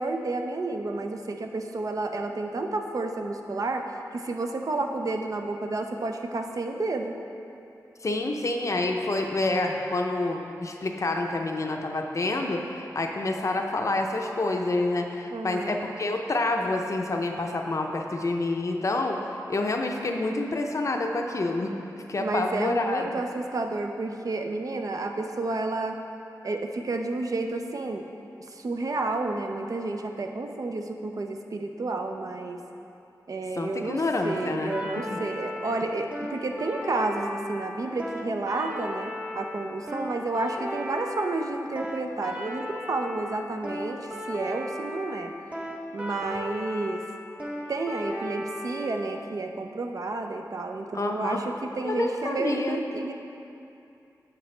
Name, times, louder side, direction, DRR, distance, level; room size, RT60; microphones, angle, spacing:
voice 1, 0.0-3.9 4.1-7.2 15.3-15.8 22.2-26.0 26.4-28.0 28.5-32.6 33.3-45.3 45.9-47.0 47.7-53.1, right 2 dB, 55° right, 4 dB, 0.5 m, -31 dB
voice 2, 8.0-19.2 19.5-21.7 22.1-23.0 33.6-34.7 35.1-35.2 50.9-51.4 51.8-52.8, left 2 dB, 50° left, 2 dB, 0.5 m, -28 dB
sound 1, 34.2-49.1, equal, 20° right, 0.8 m, -36 dB
8.4 x 6.0 x 3.3 m, 2.7 s
wide cardioid pair, 80°, 7 cm